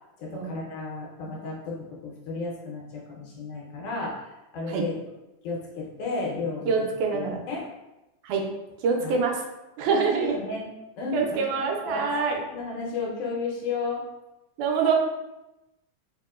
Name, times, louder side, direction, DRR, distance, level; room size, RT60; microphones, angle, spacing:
voice 1, 0.2-5.0 5.4-6.7 7.1-7.7 9.0-9.1 9.9-10.7 11.0-14.0, left 3 dB, 85° left, -3 dB, 2.4 m, -33 dB
voice 2, 6.7-7.4 8.2-8.4 8.8-9.4 9.8-10.4 11.1-12.4 14.6-14.9, right 5 dB, 80° right, 1 dB, 2.0 m, -25 dB
4.9 x 2.7 x 2.4 m, 0.97 s
omnidirectional pair, 3.6 m